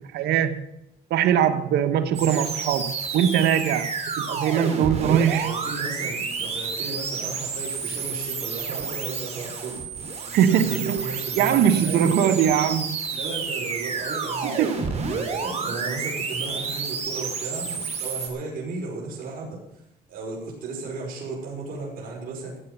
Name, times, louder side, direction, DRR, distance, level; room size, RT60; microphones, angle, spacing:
voice 1, 0.1-0.6 1.1-3.9 4.2-5.5 10.3-11.0 11.4-13.0 14.4-14.7, right 9 dB, 75° right, 1.3 m, -21 dB
sound 1, 2.1-18.3, right 5 dB, 40° right, 3.2 m, -30 dB
voice 2, 5.0-9.8 10.2-12.3 13.1-14.7 15.1-19.6 20.1-22.6, right 4 dB, 55° right, 5.6 m, -34 dB
16.0 x 8.1 x 6.9 m
cardioid pair, 110°, 17 cm